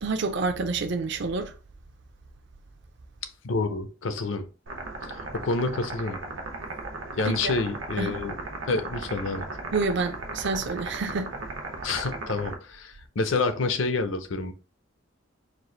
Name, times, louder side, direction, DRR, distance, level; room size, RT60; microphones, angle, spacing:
voice 1, 0.0-1.5 7.3-7.6 8.0-8.2 9.7-11.3, right 3 dB, 65° right, 0.5 m, -28 dB
voice 2, 3.4-4.5 5.0-6.2 7.2-8.3 8.7-9.5 11.8-14.5, left 3 dB, 70° left, 0.6 m, -28 dB
sound 1, 4.7-12.5, right 2 dB, 85° right, 0.9 m, -36 dB
4.6 x 2.4 x 3.7 m
head